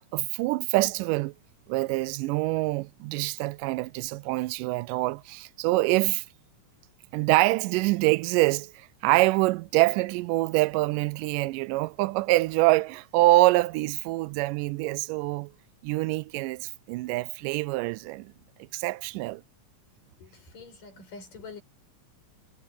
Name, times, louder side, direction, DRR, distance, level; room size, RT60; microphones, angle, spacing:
voice 1, 0.1-1.3 1.7-6.2 7.1-15.5 15.8-18.3 18.7-19.4, right 20 dB, 90° right, 2.2 m, -25 dB
voice 2, 20.2-21.6, left 4 dB, 90° left, 7.9 m, -45 dB
omnidirectional pair, 3.7 m